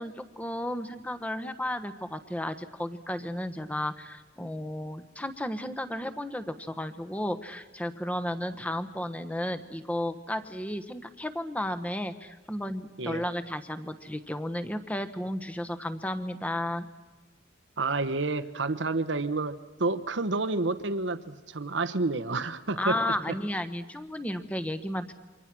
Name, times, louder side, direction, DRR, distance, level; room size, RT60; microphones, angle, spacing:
voice 1, 0.0-16.9 22.8-25.1, left 1 dB, 10° left, 9 dB, 1.3 m, -33 dB
voice 2, 17.8-23.0, right 3 dB, 70° right, 10 dB, 1.1 m, -29 dB
28.0 x 24.5 x 6.2 m, 1.3 s
head